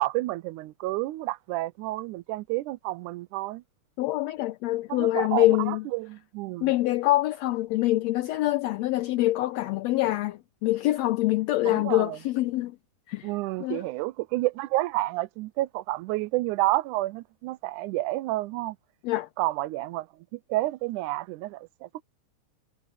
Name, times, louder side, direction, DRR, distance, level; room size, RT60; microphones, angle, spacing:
voice 1, 0.0-3.6 4.9-6.7 11.7-12.2 13.2-18.8 19.4-20.1 20.3-22.0, right 18 dB, 90° right, 2.1 m, -30 dB
voice 2, 4.0-5.8 6.6-12.8 13.1-13.3 13.6-13.8 19.0-19.3, left 16 dB, 75° left, 1.7 m, -25 dB
omnidirectional pair, 3.5 m